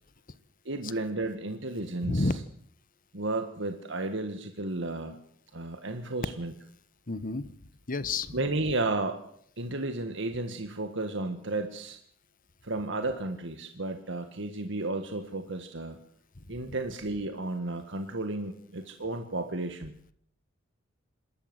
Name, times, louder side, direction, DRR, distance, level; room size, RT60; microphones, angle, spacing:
voice 1, 0.7-2.3 3.1-5.2 5.5-6.5 8.3-9.2 9.6-12.0 12.6-16.0 16.5-19.9, right 2 dB, 65° right, 6 dB, 1.8 m, -33 dB
voice 2, 7.1-7.5 7.9-8.4 16.5-16.7, left 2 dB, 45° left, 15 dB, 1.2 m, -30 dB
27.0 x 13.0 x 8.0 m, 0.64 s
head